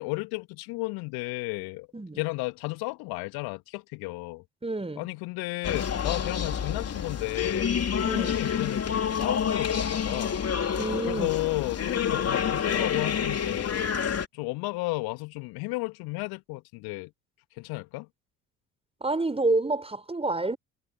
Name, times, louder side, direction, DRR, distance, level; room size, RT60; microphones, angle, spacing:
voice 1, 0.0-1.9 2.2-4.4 5.0-7.7 8.2-10.5 11.1-13.9 14.3-17.1 17.6-18.1, left 25 dB, 60° left, 2.6 m, -33 dB
voice 2, 4.6-5.1 8.0-8.4 10.8-11.3 19.0-20.6, right 2 dB, 15° right, 5.7 m, -28 dB
sound 1, 5.6-14.3, left 7 dB, 35° left, 3.9 m, -28 dB
figure-of-eight pair, 55°, 42 cm